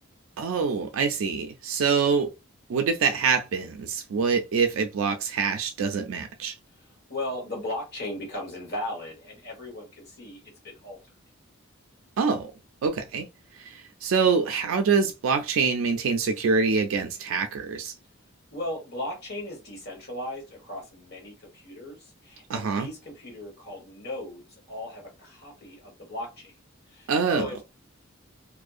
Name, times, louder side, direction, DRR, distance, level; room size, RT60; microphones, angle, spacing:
voice 1, 0.4-2.3 2.7-6.5 12.2-12.5 12.8-13.2 13.6-17.9 22.5-22.9 27.1-27.5, right 5 dB, 75° right, 0.3 m, -25 dB
voice 2, 6.7-11.0 18.5-26.5 26.9-27.6, left 1 dB, 50° left, 1.3 m, -37 dB
2.5 x 2.0 x 2.4 m
head